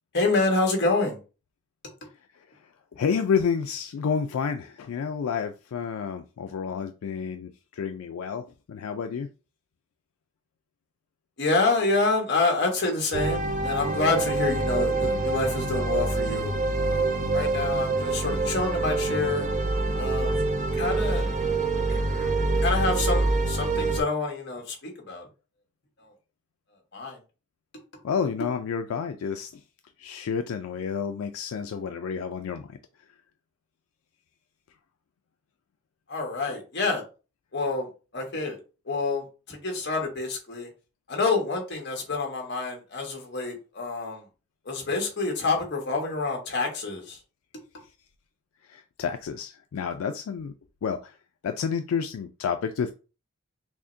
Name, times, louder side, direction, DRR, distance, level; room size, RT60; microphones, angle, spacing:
voice 1, 0.1-1.2 11.4-19.5 20.0-20.3 20.7-21.2 21.9-22.3 22.6-25.3 26.0-26.1 26.9-27.2 36.1-37.0 37.5-37.9 38.1-38.6 38.9-40.7 41.1-44.2 44.6-47.2, left 3 dB, 50° left, 1.3 m, -27 dB
voice 2, 2.9-9.3 28.0-29.6 30.0-32.8 48.7-50.5 50.8-51.2 51.4-52.9, left 6 dB, 85° left, 0.3 m, -30 dB
sound 1, 13.1-24.0, right 2 dB, 35° right, 0.5 m, -26 dB
6.0 x 2.1 x 2.6 m
head